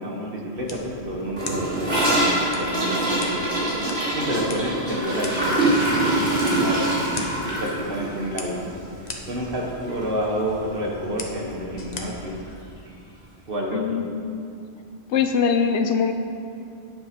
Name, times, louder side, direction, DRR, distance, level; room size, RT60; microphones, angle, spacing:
voice 1, 0.0-8.7 9.0-12.4 13.5-14.0, equal, 50° right, -2 dB, 1.6 m, -30 dB
sound 1, 0.6-12.6, left 2 dB, 40° left, 0.9 m, -41 dB
Gurgling / Toilet flush, 1.4-9.6 9.9-10.0 10.3-10.7 11.0-11.1 11.4-11.5 12.5-12.6, right 1 dB, 85° right, 3.0 m, -24 dB
voice 2, 13.7-14.5 15.1-16.1, left 6 dB, 75° left, 7 dB, 1.0 m, -22 dB
9.3 x 7.6 x 5.2 m, 2.4 s
omnidirectional pair, 1.2 m